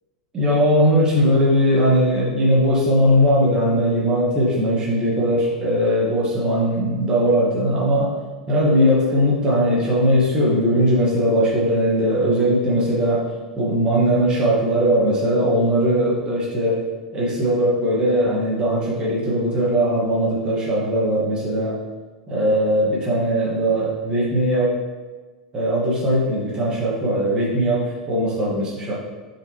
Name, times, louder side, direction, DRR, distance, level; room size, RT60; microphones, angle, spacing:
voice 1, 0.3-8.1 8.5-13.3 13.6-16.8 17.1-21.8 22.3-24.8 25.5-28.9, equal, 25° right, -6 dB, 1.8 m, -19 dB
6.2 x 4.7 x 3.2 m, 1.3 s
figure-of-eight pair, 85°, 3 cm